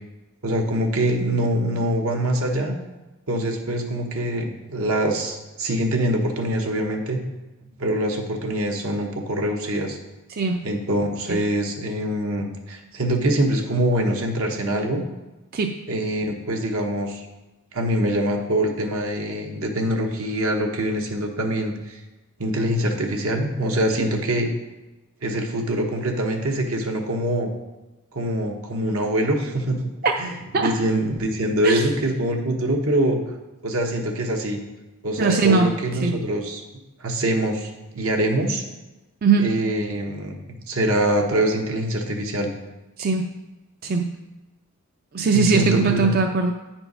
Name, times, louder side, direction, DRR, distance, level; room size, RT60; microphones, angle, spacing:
voice 1, 0.4-2.7 3.3-7.2 7.8-10.0 10.6-15.0 15.9-17.2 17.7-22.0 22.4-24.5 25.2-27.5 28.1-29.8 30.2-33.2 33.6-34.6 35.0-36.6 37.0-38.6 39.4-40.4 40.7-42.5 45.3-46.1, right 1 dB, 75° right, 2 dB, 1.1 m, -24 dB
voice 2, 10.3-10.7 11.3-11.4 15.5-15.8 30.0-30.1 30.5-30.7 31.6-31.8 35.2-35.7 36.0-36.2 39.2-39.5 43.0-43.3 43.8-44.1 45.1-46.5, right 4 dB, 40° right, 4 dB, 0.4 m, -20 dB
8.7 x 4.4 x 5.4 m, 1.1 s
head